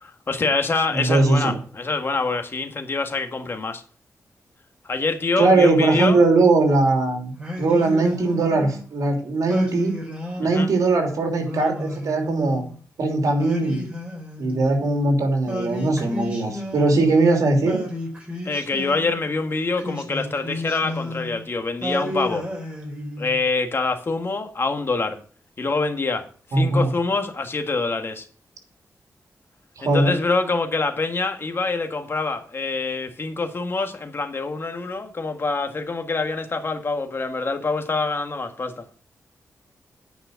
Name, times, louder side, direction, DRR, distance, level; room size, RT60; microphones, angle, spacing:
voice 1, 0.0-3.8 4.8-6.2 10.4-10.7 18.4-22.5 23.2-25.2 25.6-26.2 26.5-28.3 29.8-38.8, left 3 dB, 40° left, 1.7 m, -25 dB
voice 2, 0.9-1.6 5.4-9.9 10.4-12.6 13.0-13.8 14.4-17.8 26.5-26.9 29.8-30.1, right 2 dB, 80° right, 3.1 m, -20 dB
Singing, 7.4-8.9 9.5-10.8 11.4-12.7 13.4-14.9 15.5-17.2 17.6-19.3 19.8-21.4 21.8-23.4, left 1 dB, 20° right, 4.0 m, -32 dB
9.4 x 5.6 x 8.0 m
wide cardioid pair, 105°, 6 cm